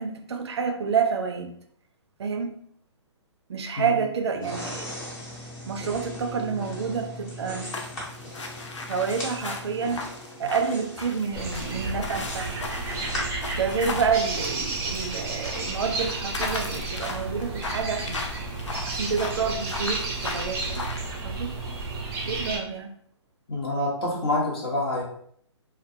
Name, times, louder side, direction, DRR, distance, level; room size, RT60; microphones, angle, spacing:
voice 1, 0.0-1.5 2.2-2.6 3.5-4.9 5.7-7.7 8.9-10.0 10.4-12.7 13.5-18.5 18.9-20.9 21.2-21.5 22.2-22.9, right 6 dB, 65° right, 5 dB, 0.5 m, -28 dB
sound 1, 4.4-13.2, left 1 dB, 20° left, 0.9 m, -38 dB
sound 2, 7.7-15.2 15.4-21.1, left 3 dB, 85° left, 0.5 m, -37 dB
sound 3, 11.3-22.6, right 3 dB, 15° right, 0.6 m, -32 dB
voice 2, 23.5-25.0, left 2 dB, 55° left, -3 dB, 1.0 m, -27 dB
2.3 x 2.2 x 2.7 m, 0.66 s
hypercardioid pair, 135°, 15 cm